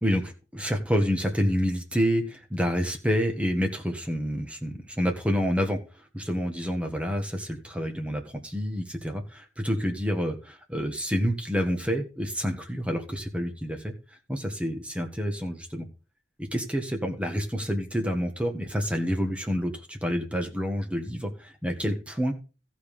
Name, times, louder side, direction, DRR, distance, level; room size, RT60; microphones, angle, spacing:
voice 1, 0.0-5.8 6.1-13.9 14.3-15.9 16.4-22.3, equal, 5° right, 3 dB, 1.6 m, -28 dB
14.5 x 5.2 x 5.5 m, 0.33 s
head